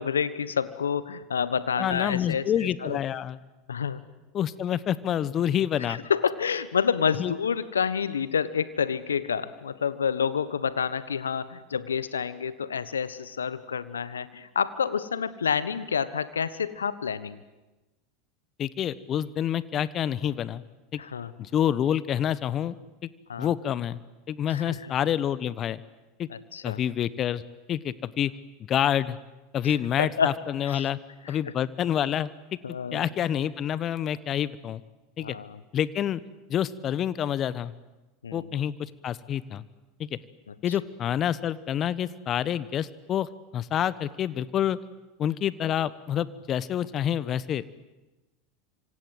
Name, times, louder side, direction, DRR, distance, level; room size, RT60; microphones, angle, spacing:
voice 1, 0.0-3.0 3.7-4.0 5.9-17.4 21.0-21.3 23.3-23.5 24.5-24.8 26.3-26.8 29.6-30.3 30.6-30.8 31.2-31.5 32.6-33.0 35.2-35.6 38.2-38.5 40.5-40.6, left 7 dB, 85° left, 15 dB, 1.2 m, -29 dB
voice 2, 1.8-3.4 4.3-6.0 7.2-7.3 18.6-20.6 20.9-21.0 21.4-22.8 23.0-23.1 23.4-24.0 24.3-25.8 26.2-26.3 26.6-27.4 27.7-28.3 28.7-29.2 29.5-31.0 31.3-34.8 35.2-35.4 35.7-36.2 36.5-37.7 38.3-39.6 40.0-40.2 40.6-44.8 45.2-47.6, left 10 dB, 40° left, 17 dB, 1.1 m, -28 dB
27.0 x 25.5 x 8.0 m, 1.1 s
hypercardioid pair, 85°, 0 cm